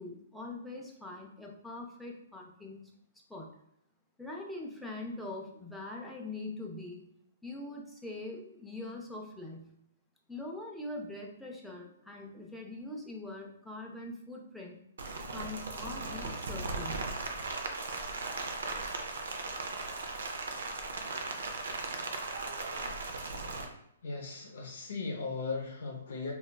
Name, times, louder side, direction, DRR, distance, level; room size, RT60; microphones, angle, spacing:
voice 1, 0.0-2.8 3.3-3.5 4.2-7.0 7.4-9.7 10.3-14.8 15.3-17.0 20.0-20.1, left 2 dB, ahead, -2 dB, 0.4 m, -42 dB
Rain, 15.0-23.6, right 3 dB, 75° right, 0.5 m, -37 dB
voice 2, 24.0-26.3, left 4 dB, 75° left, 0 dB, 0.6 m, -37 dB
3.0 x 2.3 x 2.2 m, 0.78 s
hypercardioid pair, 150°, 0 cm